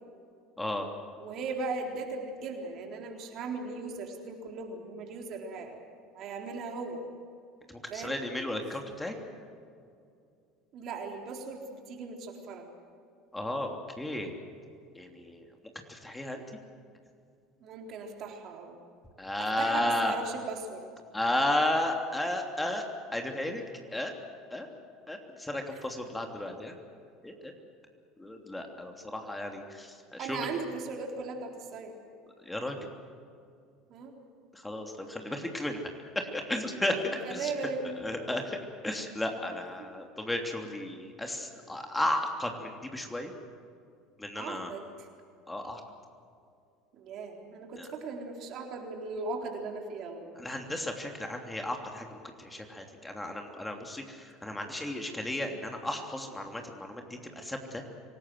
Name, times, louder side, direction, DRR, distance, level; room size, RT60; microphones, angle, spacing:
voice 1, 0.6-0.9 7.7-9.2 13.3-14.3 14.9-15.5 15.9-16.4 19.2-20.1 21.1-22.8 23.1-23.6 23.9-24.1 24.5-24.7 25.1-26.8 27.2-27.5 28.2-30.5 32.4-32.9 34.5-35.8 36.1-37.5 38.0-38.6 38.8-43.3 44.2-44.7 45.5-45.8 47.8-47.9 50.3-57.8, left 1 dB, 10° left, 3 dB, 3.1 m, -34 dB
voice 2, 1.2-5.8 6.1-7.0 7.9-8.2 10.7-12.7 17.6-18.8 19.4-20.8 30.2-31.9 33.9-34.1 37.1-38.0 44.3-44.8 46.9-50.3, right 4 dB, 50° right, 2 dB, 4.0 m, -38 dB
26.0 x 19.0 x 7.8 m, 2.4 s
hypercardioid pair, 70°, 0 cm